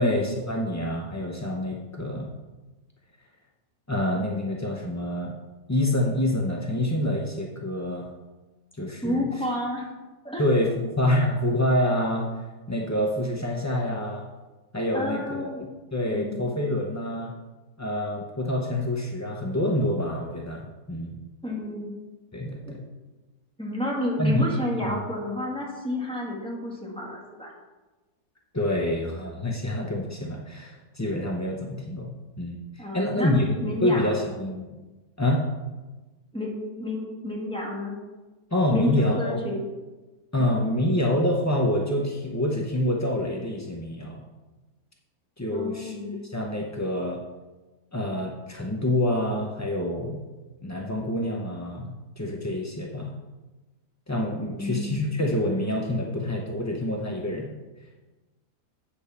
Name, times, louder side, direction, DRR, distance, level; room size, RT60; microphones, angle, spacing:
voice 1, 0.0-2.3 3.9-5.3 5.7-8.1 8.8-9.3 10.4-12.3 12.7-14.2 14.7-17.3 17.8-20.6 20.9-21.2 22.3-22.8 24.2-24.5 24.8-25.0 28.5-33.5 33.8-34.8 35.2-35.4 38.5-39.4 40.3-44.2 45.4-45.9 46.3-47.2 47.9-50.2 50.6-53.1 54.1-57.5, left 1 dB, 25° left, -1 dB, 0.3 m, -27 dB
voice 2, 9.0-9.9 10.2-10.4 14.9-15.6 16.1-16.4 21.4-21.9 22.7-22.8 23.6-27.5 32.8-34.3 36.3-38.0 38.7-39.7 40.4-40.5 45.5-46.2 54.5-55.0, left 1 dB, 5° left, -4 dB, 2.0 m, -30 dB
8.5 x 5.2 x 6.9 m, 1.2 s
omnidirectional pair, 1.8 m